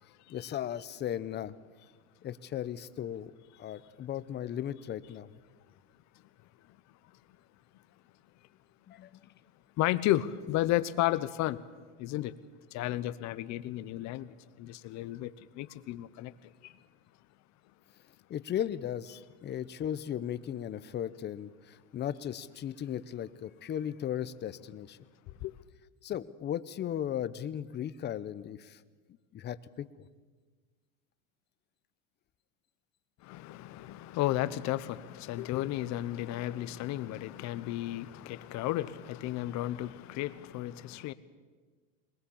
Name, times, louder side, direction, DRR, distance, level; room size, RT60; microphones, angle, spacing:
voice 1, 0.3-1.5 2.2-3.3 3.6-5.3 8.9-9.2 18.3-25.0 26.0-28.8 29.3-29.9, left 10 dB, 25° left, 0.8 m, -36 dB
voice 2, 9.8-11.6 12.0-12.3 12.7-15.3 15.6-16.3 16.6-16.7 25.4-25.5 33.2-41.1, left 15 dB, 45° left, 1.0 m, -33 dB
21.5 x 20.5 x 7.2 m
supercardioid pair, 125°, 39 cm